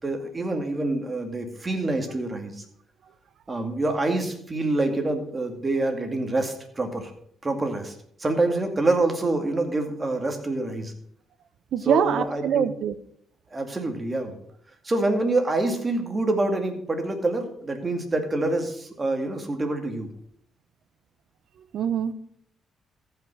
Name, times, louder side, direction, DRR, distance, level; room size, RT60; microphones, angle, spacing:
voice 1, 0.0-2.6 3.5-7.1 7.4-10.9 11.8-12.7 13.5-14.4 14.8-20.1, right 2 dB, 25° right, 5 dB, 2.2 m, -26 dB
voice 2, 11.7-12.9 21.7-22.1, right 8 dB, 70° right, 14 dB, 0.8 m, -24 dB
14.5 x 5.8 x 6.0 m, 0.66 s
cardioid pair, 90°, 0 cm